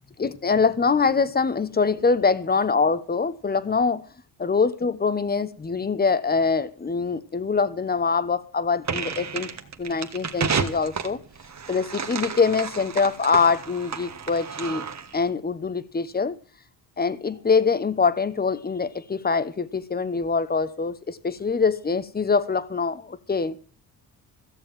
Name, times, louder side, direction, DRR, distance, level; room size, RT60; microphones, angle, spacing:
voice 1, 0.2-4.0 4.4-9.5 9.8-11.2 11.7-14.8 15.1-16.3 17.0-23.6, left 5 dB, 20° left, 1.1 m, -24 dB
sound 1, 8.8-15.2, right 6 dB, 40° right, 1.6 m, -31 dB
15.0 x 7.0 x 7.4 m
cardioid pair, 85°, 43 cm